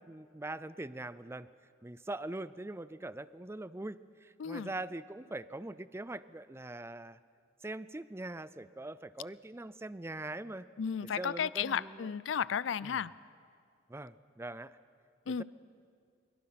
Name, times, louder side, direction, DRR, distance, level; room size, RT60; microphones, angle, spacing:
voice 1, 0.0-1.5 1.8-7.2 7.6-10.7 11.2-12.1 12.8-13.0 13.9-14.8 15.3-15.4, right 2 dB, 15° right, 16 dB, 0.5 m, -42 dB
voice 2, 10.8-13.1 15.3-15.4, left 7 dB, 70° left, 19 dB, 0.4 m, -33 dB
23.0 x 22.5 x 5.9 m, 2.2 s
head